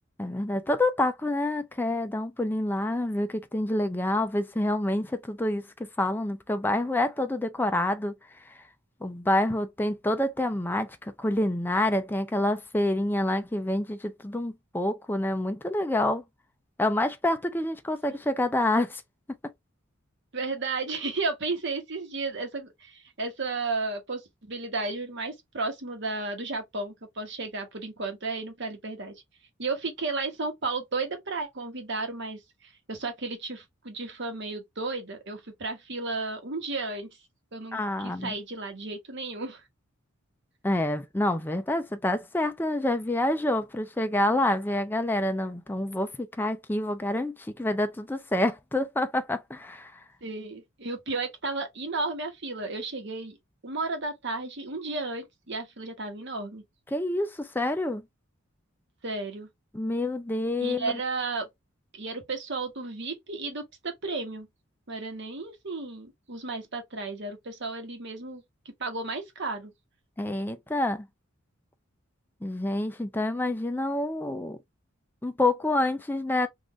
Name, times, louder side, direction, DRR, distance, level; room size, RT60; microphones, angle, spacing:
voice 1, 0.2-8.1 9.0-10.9 11.2-16.2 16.8-19.0 37.7-38.3 40.6-49.9 56.9-58.0 59.7-61.0 70.2-71.1 72.4-74.6 75.2-76.5, left 1 dB, 10° left, 0.4 m, -27 dB
voice 2, 20.3-29.1 29.6-37.1 37.5-39.6 50.2-53.4 53.6-56.6 59.0-59.5 60.6-61.5 61.9-64.5 64.9-69.7, right 3 dB, 55° right, 1.1 m, -33 dB
3.7 x 2.5 x 3.0 m
head